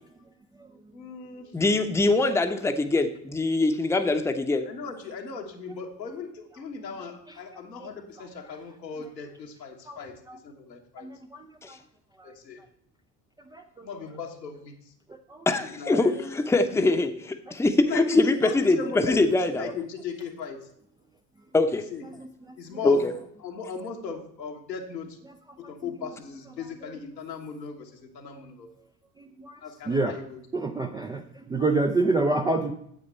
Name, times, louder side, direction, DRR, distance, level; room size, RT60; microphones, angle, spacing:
voice 1, 0.9-1.5 4.6-11.1 12.2-12.6 13.8-14.7 15.8-16.3 17.9-20.6 21.9-22.0 22.6-23.1 23.4-25.2 25.6-28.7 29.6-30.4, left 5 dB, 80° left, 1 dB, 1.4 m, -37 dB
voice 2, 1.5-4.7 11.6-11.7 15.5-19.7 21.5-21.9 22.8-23.1, left 2 dB, 5° left, 7 dB, 0.7 m, -23 dB
voice 3, 30.5-31.2 31.5-32.7, right 2 dB, 10° right, 4 dB, 0.3 m, -25 dB
8.9 x 8.1 x 4.4 m, 0.71 s
figure-of-eight pair, 60°, 50 cm